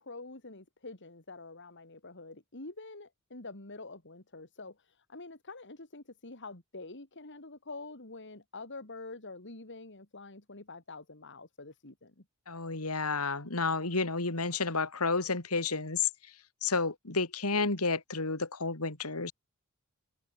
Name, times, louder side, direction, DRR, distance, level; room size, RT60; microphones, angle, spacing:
voice 1, 0.0-12.2, left 3 dB, 55° left, 3.1 m, -46 dB
voice 2, 12.5-16.1 16.6-19.3, left 4 dB, 90° left, 3.2 m, -31 dB
head